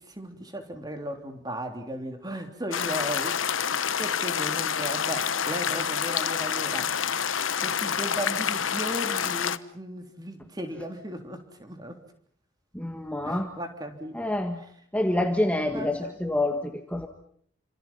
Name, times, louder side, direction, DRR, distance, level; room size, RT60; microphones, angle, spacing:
voice 1, 0.0-3.7 4.0-6.9 7.6-12.0 13.2-14.1 15.7-16.2, equal, 20° right, 5 dB, 3.3 m, -36 dB
sound 1, 2.7-9.6, left 8 dB, 85° left, 1.1 m, -28 dB
voice 2, 12.7-13.5 14.1-14.6 14.9-17.1, left 1 dB, 5° left, 4 dB, 1.5 m, -27 dB
29.5 x 26.5 x 5.6 m, 0.63 s
head